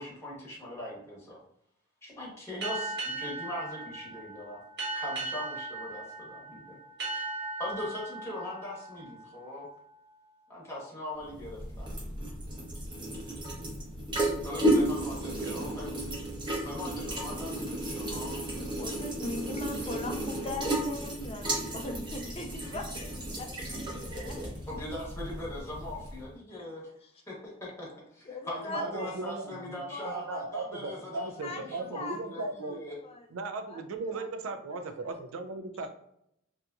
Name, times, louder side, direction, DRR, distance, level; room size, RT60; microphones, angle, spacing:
voice 1, 0.0-1.4 2.0-4.6 4.9-6.8 7.1-7.2 7.6-9.7 10.5-11.9 14.4-15.9 16.6-18.4 24.7-26.9 27.3-27.9 28.1-32.9, left 1 dB, 15° left, -4 dB, 0.9 m, -40 dB
sound 1, 2.6-9.9, right 2 dB, 55° right, 1.0 m, -38 dB
sound 2, 11.2-26.3, right 1 dB, 25° right, 0.7 m, -33 dB
voice 2, 15.2-15.7 28.8-32.8 33.3-35.9, right 3 dB, 80° right, 7 dB, 0.4 m, -37 dB
voice 3, 18.8-24.5 26.5-26.7 27.0-27.1 28.2-29.2 29.5-30.6 31.3-32.7 33.0-33.3 33.7-33.8 34.1-34.3 35.0-35.2, left 2 dB, 30° left, 3 dB, 0.4 m, -41 dB
2.7 x 2.5 x 2.2 m, 0.73 s
head